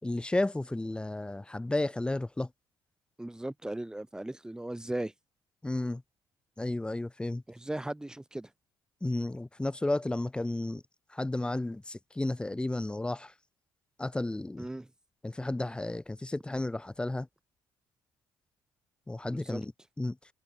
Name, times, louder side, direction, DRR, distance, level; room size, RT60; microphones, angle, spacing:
voice 1, 0.0-2.5 5.6-6.0 6.6-7.4 9.0-10.8 11.1-13.3 14.0-14.7 15.2-17.3 19.1-19.7 20.0-20.2, left 2 dB, 10° left, 3.7 m, -32 dB
voice 2, 3.2-5.1 7.5-8.5 14.6-14.9 19.3-19.6, right 1 dB, 10° right, 3.2 m, -37 dB
cardioid pair, 115°, 9 cm